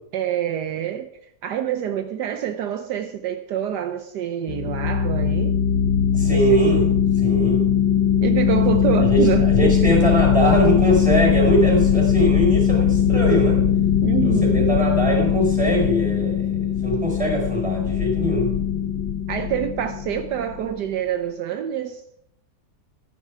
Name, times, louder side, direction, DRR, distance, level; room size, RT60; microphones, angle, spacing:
voice 1, 0.1-1.1 1.4-5.6 6.3-6.6 8.2-10.1 14.0-14.7 19.3-22.0, right 10 dB, 75° right, 8 dB, 1.3 m, -26 dB
sound 1, 4.5-20.7, left 8 dB, 80° left, 1.6 m, -20 dB
voice 2, 6.1-6.9 7.2-7.7 9.0-13.6 14.2-16.5 16.8-18.5, right 1 dB, 5° right, 0 dB, 4.9 m, -22 dB
15.0 x 9.7 x 4.8 m, 0.76 s
omnidirectional pair, 1.9 m